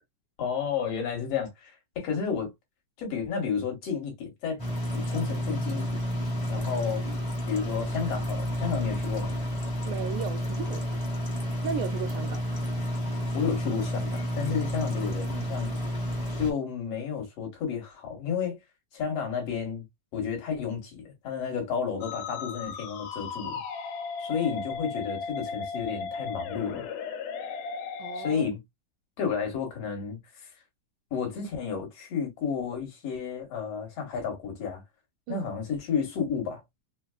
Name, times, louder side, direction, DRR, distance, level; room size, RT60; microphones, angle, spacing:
voice 1, 0.4-2.5 3.0-4.6 4.9-6.0 6.5-7.0 7.5-9.4 13.3-15.7 16.3-18.6 18.9-19.8 20.1-23.6 24.2-26.9 28.1-28.6 29.2-30.2 31.1-34.8 35.3-36.6, left 6 dB, 60° left, 2.0 m, -31 dB
sound 1, 4.6-16.5, equal, 30° left, 0.6 m, -30 dB
voice 2, 9.9-10.8 11.6-12.7 28.0-28.5 35.3-35.5, right 7 dB, 80° right, 1.9 m, -35 dB
Musical instrument, 22.0-28.3, left 5 dB, 75° left, 2.1 m, -36 dB
5.4 x 2.2 x 2.2 m
omnidirectional pair, 3.8 m